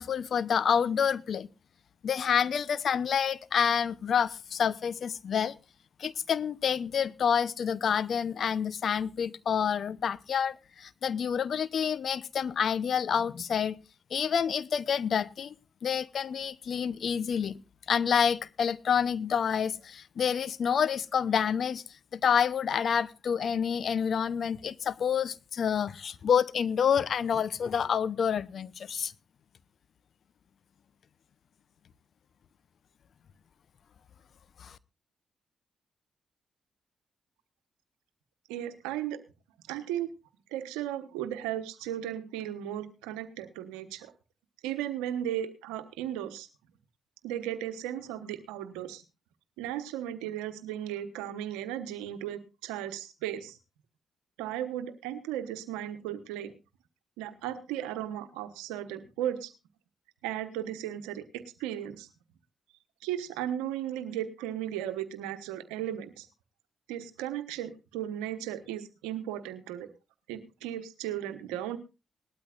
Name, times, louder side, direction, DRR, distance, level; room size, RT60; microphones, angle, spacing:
voice 1, 0.0-1.5 2.0-5.5 6.0-13.8 14.1-15.5 15.8-17.6 17.9-21.8 22.1-29.1 34.6-34.8, left 7 dB, 65° left, 0.7 m, -28 dB
voice 2, 38.5-39.2 39.7-40.1 40.5-44.1 44.6-46.5 47.2-49.0 49.6-53.6 54.4-56.5 57.2-59.5 60.2-62.1 63.0-66.3 66.9-69.9 70.3-71.8, right 11 dB, 90° right, 1.1 m, -36 dB
19.5 x 12.5 x 2.5 m
hypercardioid pair, 45°, 0 cm